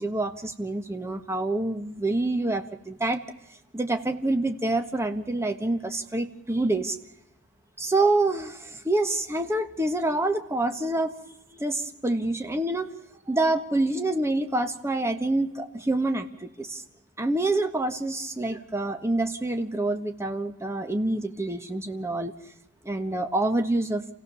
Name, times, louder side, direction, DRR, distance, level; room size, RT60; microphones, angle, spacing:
voice 1, 0.0-3.2 3.7-7.0 7.8-11.1 11.5-12.9 13.3-16.8 17.2-22.3 22.8-24.0, right 2 dB, 10° right, 7 dB, 1.3 m, -27 dB
29.0 x 16.5 x 7.0 m, 0.87 s
head